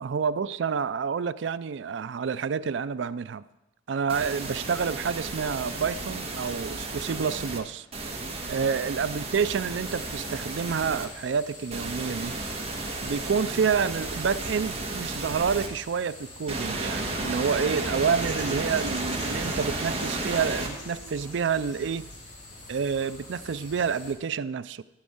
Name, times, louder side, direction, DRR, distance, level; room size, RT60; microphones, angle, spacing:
voice 1, 0.0-3.4 3.9-7.9 8.5-12.3 13.0-22.1 22.7-24.8, right 6 dB, 70° right, 16 dB, 0.4 m, -28 dB
sound 1, 4.1-7.6 7.9-11.1 11.7-15.7 16.5-20.7, right 2 dB, 35° right, 1.6 m, -33 dB
sound 2, 9.8-24.1, left 1 dB, 40° left, 3.0 m, -45 dB
14.5 x 5.3 x 8.6 m, 0.99 s
head